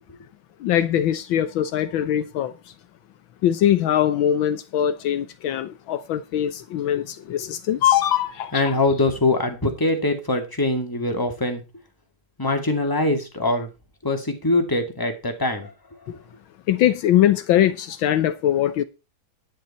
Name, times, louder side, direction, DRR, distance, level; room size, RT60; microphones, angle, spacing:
voice 1, 0.6-2.5 3.4-8.6 16.1-16.2 16.7-18.8, left 11 dB, 75° left, 1.5 m, -21 dB
voice 2, 8.5-11.6 12.4-13.7 14.0-15.7, left 2 dB, 10° left, 2.2 m, -23 dB
10.5 x 10.5 x 4.3 m
omnidirectional pair, 2.2 m